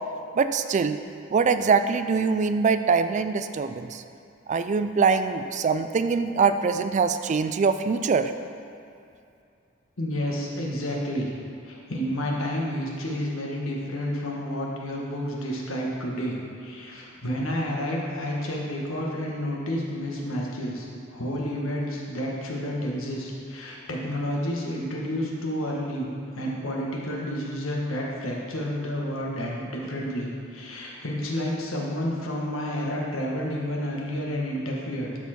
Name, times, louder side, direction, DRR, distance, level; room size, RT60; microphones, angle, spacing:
voice 1, 0.3-1.0 1.3-4.0 4.5-8.3, right 5 dB, 35° right, 10 dB, 0.3 m, -23 dB
voice 2, 10.0-11.3 11.6-26.1 26.4-35.1, equal, 90° left, -2 dB, 1.5 m, -30 dB
12.5 x 4.5 x 4.4 m, 2.5 s
head